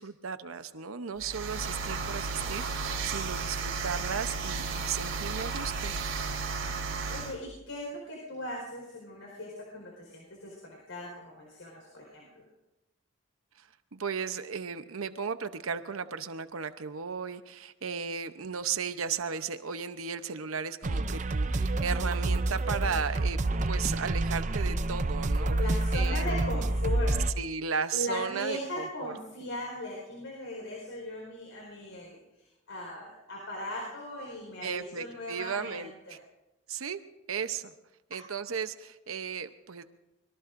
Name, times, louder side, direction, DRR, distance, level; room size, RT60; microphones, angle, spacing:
voice 1, 0.0-6.0 13.6-25.6 25.9-26.3 27.1-29.1 34.6-36.2 36.7-37.0 37.3-37.7 38.1-39.8, right 6 dB, 90° right, 10 dB, 0.8 m, -35 dB
sound 1, 1.2-7.3, right 4 dB, 70° right, 2.7 m, -33 dB
voice 2, 7.1-12.4 25.6-27.3 27.9-36.2, left 1 dB, 75° left, -2 dB, 4.7 m, -39 dB
sound 2, 20.8-27.3, right 2 dB, 35° right, 0.5 m, -28 dB
25.0 x 22.0 x 2.6 m, 0.98 s
head